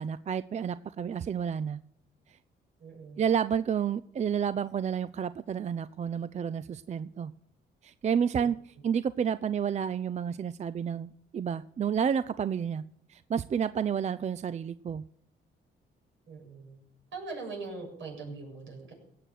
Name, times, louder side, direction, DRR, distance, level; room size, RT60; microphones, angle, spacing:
voice 1, 0.0-1.8 3.2-7.3 7.8-12.8 13.1-15.0, right 7 dB, 35° right, 16 dB, 0.4 m, -30 dB
voice 2, 2.8-3.2 8.4-8.5 16.3-16.8 17.1-18.9, right 3 dB, 70° right, -1 dB, 7.0 m, -41 dB
17.5 x 7.7 x 6.4 m, 0.72 s
cardioid pair, 90°, 20 cm